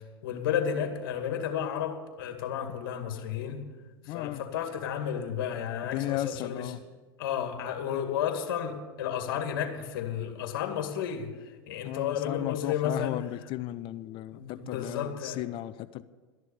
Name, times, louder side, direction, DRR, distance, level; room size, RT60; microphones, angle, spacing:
voice 1, 0.2-3.6 4.1-6.7 7.2-11.3 11.7-13.2 14.3-15.4, left 8 dB, 65° left, 5 dB, 2.2 m, -32 dB
voice 2, 4.0-4.4 5.9-6.8 11.8-16.0, left 15 dB, 45° left, 13 dB, 0.6 m, -35 dB
13.5 x 11.0 x 7.0 m, 1.3 s
hypercardioid pair, 95°, 12 cm